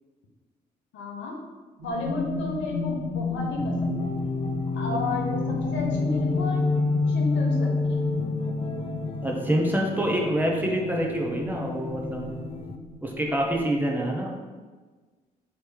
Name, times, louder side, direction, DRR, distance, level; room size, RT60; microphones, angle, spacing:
voice 1, 0.9-1.4 1.8-4.1 4.7-6.7 7.1-8.1, left 3 dB, 65° left, -1 dB, 0.9 m, -32 dB
sound 1, 1.8-13.6, left 2 dB, 65° right, 1.0 m, -34 dB
sound 2, 3.6-12.8, left 3 dB, 30° left, 0.4 m, -29 dB
voice 2, 9.2-12.4 13.0-14.3, right 1 dB, 10° right, -1 dB, 1.0 m, -26 dB
3.2 x 3.1 x 4.7 m, 1.4 s
hypercardioid pair, 45°, 21 cm